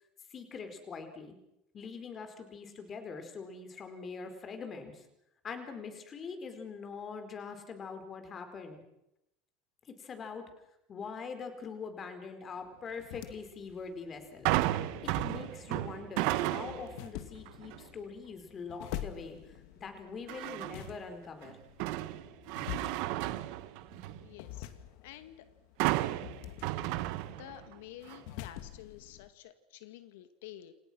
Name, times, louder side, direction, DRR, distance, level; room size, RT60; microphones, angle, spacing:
voice 1, 0.3-1.4 1.7-5.1 5.4-8.8 9.9-10.4 10.9-14.5 15.0-21.6, left 5 dB, 25° left, 7 dB, 4.6 m, -43 dB
sound 1, 12.6-29.3, left 13 dB, 60° left, 2.4 m, -47 dB
sound 2, 14.4-17.0 17.4-17.8 20.3-21.0 21.4-24.3 25.8-27.7 28.1-28.2, right 16 dB, 60° right, 1.6 m, -33 dB
voice 2, 24.2-24.7 25.0-25.4 27.2-30.7, left 12 dB, 85° left, 10 dB, 2.0 m, -50 dB
29.5 x 28.0 x 6.3 m, 0.84 s
cardioid pair, 160°, 0 cm